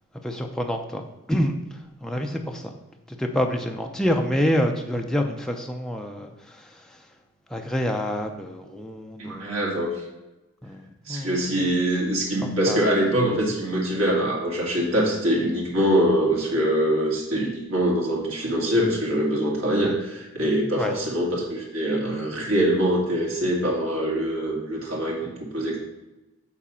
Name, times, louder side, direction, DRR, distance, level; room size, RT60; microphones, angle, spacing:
voice 1, 0.2-1.0 1.3-2.7 3.1-7.0 7.5-9.5 10.6-11.6 12.7-12.9 19.8-19.9 20.8-20.9, equal, ahead, 2 dB, 0.5 m, -27 dB
voice 2, 9.2-10.0 11.1-25.8, equal, 70° right, -4 dB, 2.3 m, -24 dB
7.3 x 4.0 x 5.5 m, 1.0 s
head